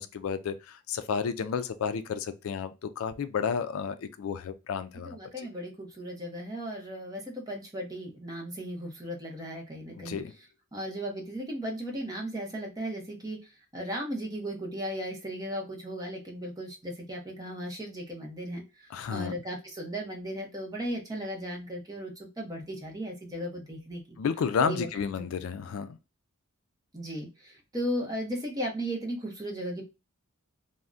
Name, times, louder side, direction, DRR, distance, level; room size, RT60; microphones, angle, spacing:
voice 1, 0.0-5.5 10.0-10.3 18.9-19.3 24.2-26.0, left 6 dB, 65° left, 0.3 m, -32 dB
voice 2, 5.1-10.2 10.7-13.4 13.7-18.6 19.1-24.2 24.6-24.9 26.9-29.8, equal, 15° right, 0.7 m, -36 dB
3.5 x 2.1 x 2.5 m
head